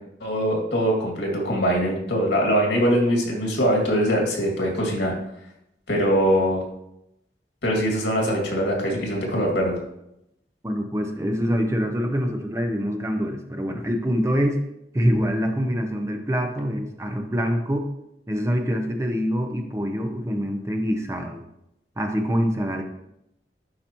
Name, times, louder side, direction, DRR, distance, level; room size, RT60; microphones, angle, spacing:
voice 1, 0.2-5.1 5.9-6.6 7.6-9.8, equal, 90° left, -1 dB, 2.2 m, -22 dB
voice 2, 10.6-14.6 14.9-17.9 18.3-21.4 22.0-22.8, equal, 15° right, 4 dB, 0.6 m, -25 dB
11.0 x 4.7 x 3.0 m, 0.82 s
head